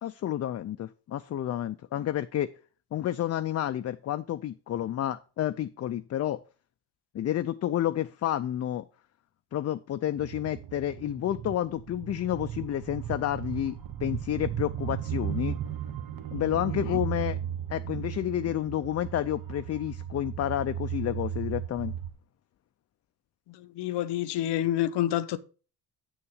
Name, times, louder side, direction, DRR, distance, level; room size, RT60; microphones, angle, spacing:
voice 1, 0.0-2.5 2.9-6.4 7.1-8.8 9.5-15.6 16.3-17.4 17.7-21.9, left 12 dB, 40° left, 0.4 m, -30 dB
sound 1, 10.2-22.1, right 10 dB, 55° right, 1.1 m, -36 dB
voice 2, 23.5-25.4, left 12 dB, 85° left, 0.7 m, -28 dB
7.0 x 6.5 x 5.0 m
cardioid pair, 100°, 40 cm